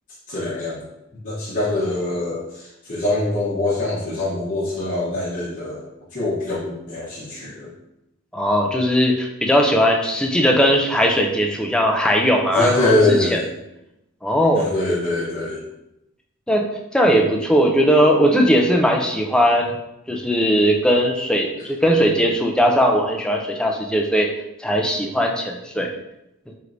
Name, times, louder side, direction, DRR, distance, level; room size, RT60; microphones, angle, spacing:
voice 1, 0.3-7.7 12.5-13.4 14.5-15.6, left 2 dB, 40° left, -8 dB, 0.9 m, -23 dB
voice 2, 8.3-12.7 13.1-13.4 14.2-14.7 16.5-16.7 16.9-19.8 20.1-24.3 24.6-25.9, equal, 5° left, 1 dB, 0.4 m, -18 dB
4.5 x 3.1 x 2.6 m, 0.87 s
head